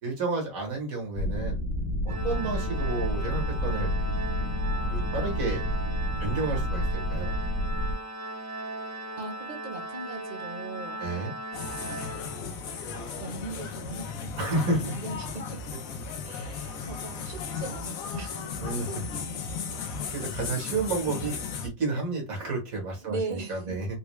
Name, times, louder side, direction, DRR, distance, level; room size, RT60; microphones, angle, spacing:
voice 1, 0.0-1.6 2.1-3.9 4.9-5.6 6.2-7.3 11.0-11.3 14.4-14.9 16.1-16.2 18.6-19.0 20.1-23.9, right 3 dB, 80° right, 1.9 m, -31 dB
sound 1, 1.1-7.9, equal, 65° left, 1.5 m, -29 dB
Organ, 2.1-12.8, right 1 dB, 25° right, 0.4 m, -38 dB
voice 2, 9.2-11.0 11.8-12.6 13.2-15.6 16.2-18.4 19.1-19.4 23.0-23.8, right 3 dB, 40° right, 0.9 m, -39 dB
sound 2, 11.5-21.7, left 5 dB, 85° left, 1.1 m, -36 dB
4.0 x 2.2 x 3.1 m
omnidirectional pair, 1.4 m